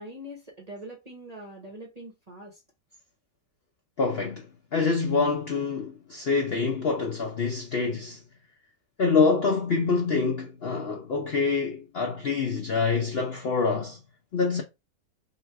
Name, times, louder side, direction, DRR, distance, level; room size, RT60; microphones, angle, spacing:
voice 1, 0.0-2.6, equal, 30° right, 0.8 m, -43 dB
voice 2, 4.0-8.2 9.0-14.0 14.3-14.6, left 4 dB, 60° left, 0.6 m, -26 dB
3.9 x 2.4 x 4.5 m
omnidirectional pair, 1.8 m